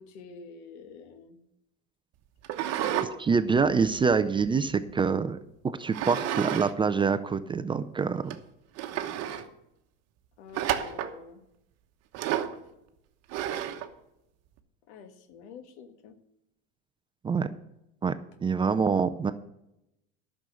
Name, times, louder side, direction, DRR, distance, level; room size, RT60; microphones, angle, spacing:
voice 1, 0.0-1.4 10.4-11.4 14.9-16.2, left 5 dB, 80° left, 9 dB, 1.6 m, -48 dB
sound 1, 2.4-3.1 3.5-4.9 5.9-6.7 7.0-7.1 7.8-7.9 8.3-8.4 8.8-9.5 10.5-11.2 12.1-12.6 13.3-13.9, right 11 dB, 50° right, 1.2 m, -31 dB
voice 2, 3.0-5.4 5.8-8.3 17.2-17.5 18.0-18.1 18.4-19.3, right 5 dB, 15° right, 11 dB, 0.4 m, -25 dB
10.5 x 6.4 x 8.2 m, 0.85 s
supercardioid pair, 120°, 33 cm